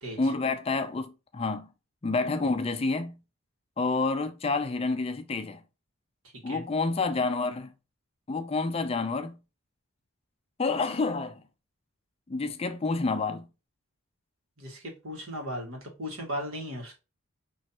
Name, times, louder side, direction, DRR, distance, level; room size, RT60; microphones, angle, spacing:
voice 1, 0.2-1.7 2.0-3.2 3.8-5.6 6.4-7.7 8.3-9.4 10.6-11.4 12.3-13.5, left 3 dB, 25° left, 0.4 m, -28 dB
voice 2, 14.6-16.9, equal, 75° right, 1.8 m, -36 dB
5.4 x 3.1 x 2.9 m
head